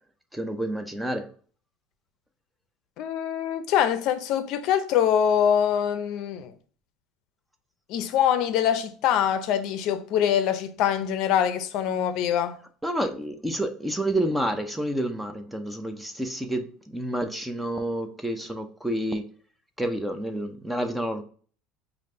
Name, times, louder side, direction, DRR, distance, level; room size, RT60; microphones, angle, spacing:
voice 1, 0.3-1.3 12.8-19.3 19.8-21.2, right 1 dB, 5° right, 0.5 m, -29 dB
voice 2, 3.0-6.5 7.9-12.6, left 9 dB, 55° left, 0.5 m, -24 dB
5.0 x 2.5 x 3.1 m
cardioid pair, 155°, 0 cm